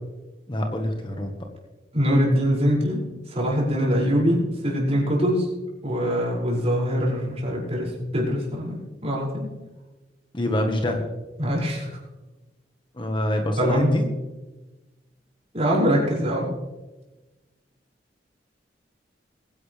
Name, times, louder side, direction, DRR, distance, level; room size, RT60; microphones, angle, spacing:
voice 1, 0.5-1.3 10.3-11.0 12.9-14.1, left 1 dB, 30° left, 3 dB, 1.4 m, -26 dB
voice 2, 1.9-5.5 5.8-9.5 11.4-12.0 13.6-14.0 15.5-16.5, equal, 35° right, -4 dB, 5.8 m, -23 dB
22.0 x 11.0 x 3.4 m, 1.1 s
head